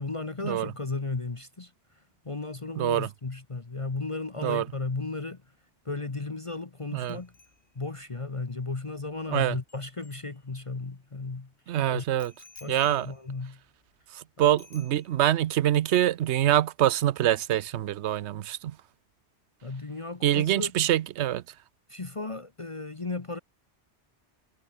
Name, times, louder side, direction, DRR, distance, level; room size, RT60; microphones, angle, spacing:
voice 1, 0.0-1.7 2.2-5.4 5.8-7.3 7.7-11.5 11.8-12.0 12.6-13.6 14.4-14.5 19.6-20.7 21.9-23.4, left 3 dB, 30° left, 1.1 m, -35 dB
voice 2, 2.8-3.1 4.4-4.6 6.9-7.2 9.3-9.6 11.7-12.3 12.7-13.1 14.1-18.7 20.2-21.4, right 12 dB, 75° right, 0.9 m, -25 dB
Bicycle bell, 7.0-10.9 12.2-14.2 14.6-15.5 15.7-16.0, left 3 dB, 60° left, 3.2 m, -56 dB
omnidirectional pair, 1.1 m